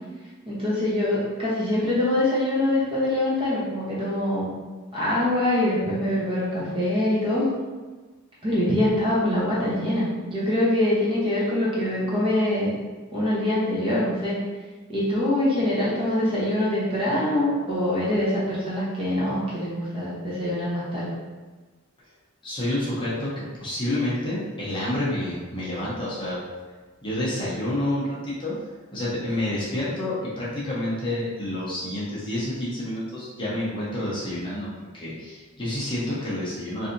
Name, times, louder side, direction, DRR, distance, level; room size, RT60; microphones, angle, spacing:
voice 1, 0.5-4.5 4.9-7.5 8.4-12.8 13.1-14.4 14.9-21.2, left 1 dB, 25° right, -8 dB, 0.8 m, -24 dB
voice 2, 22.4-26.4 27.0-28.5 28.9-34.7 34.9-36.9, left 1 dB, 25° left, -9 dB, 0.7 m, -29 dB
3.3 x 2.7 x 2.6 m, 1.3 s
head